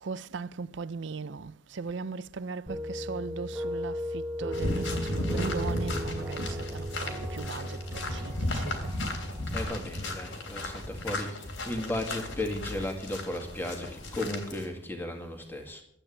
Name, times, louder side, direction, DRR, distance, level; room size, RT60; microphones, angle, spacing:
voice 1, 0.0-8.9, right 4 dB, 70° right, 0.5 m, -38 dB
sound 1, 2.7-9.6, equal, 10° right, 1.3 m, -36 dB
sound 2, 4.5-14.7, left 1 dB, 85° left, 3.2 m, -35 dB
voice 2, 9.4-15.8, left 1 dB, 10° left, 2.0 m, -35 dB
12.0 x 8.9 x 8.6 m
head